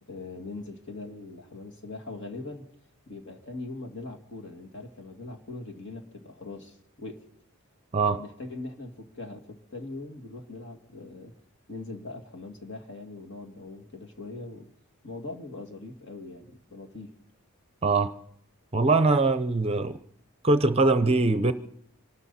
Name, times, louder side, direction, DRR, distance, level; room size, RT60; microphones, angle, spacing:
voice 1, 0.0-2.7 3.1-7.2 8.1-11.3 11.7-14.7 15.0-17.1, left 2 dB, 55° left, 3 dB, 2.3 m, -41 dB
voice 2, 18.7-20.0 20.4-21.5, right 3 dB, 25° right, 11 dB, 0.6 m, -22 dB
26.0 x 12.5 x 4.2 m, 0.66 s
head